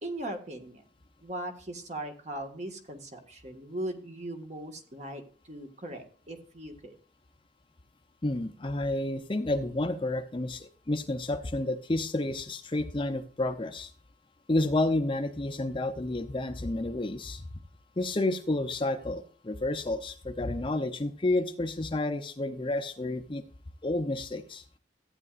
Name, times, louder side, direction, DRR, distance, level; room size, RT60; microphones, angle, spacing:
voice 1, 0.0-0.8 1.2-6.9, right 1 dB, 40° right, 4 dB, 1.5 m, -39 dB
voice 2, 8.2-13.9 14.5-17.5 18.0-23.4 23.8-24.6, left 2 dB, 30° left, 7 dB, 0.6 m, -30 dB
15.0 x 8.8 x 2.5 m, 0.43 s
head